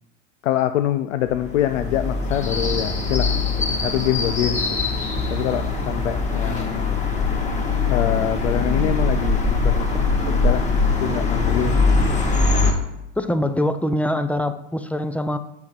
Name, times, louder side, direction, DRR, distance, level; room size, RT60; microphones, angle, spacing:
voice 1, 0.4-3.3 3.7-4.8 5.3-7.0 7.9-10.7 11.0-12.0, left 12 dB, 85° left, 9 dB, 0.5 m, -25 dB
sound 1, 1.3-12.7, left 3 dB, 20° left, 1.9 m, -22 dB
voice 2, 13.2-15.4, left 1 dB, 5° left, 10 dB, 0.5 m, -23 dB
7.5 x 5.3 x 4.5 m, 0.85 s
hypercardioid pair, 80°, 36 cm